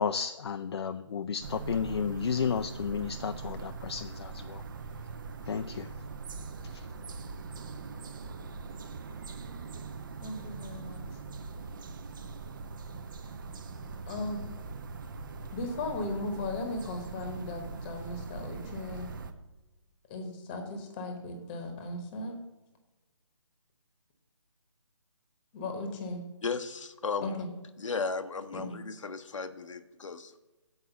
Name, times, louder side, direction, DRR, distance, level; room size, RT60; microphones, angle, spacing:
voice 1, 0.0-4.6 5.4-6.0 6.7-6.9, left 6 dB, 55° left, 9 dB, 0.4 m, -32 dB
sound 1, 1.4-19.3, right 4 dB, 40° right, 0.7 m, -42 dB
voice 2, 10.2-11.0 14.1-14.4 15.5-19.1 20.1-22.4 25.5-26.2 27.2-27.5 28.5-28.7, left 2 dB, 20° left, 5 dB, 1.1 m, -37 dB
voice 3, 26.4-27.4 27.8-30.4, left 4 dB, 75° left, 9 dB, 0.8 m, -35 dB
7.9 x 4.8 x 6.9 m, 1.1 s
hypercardioid pair, 160°, 16 cm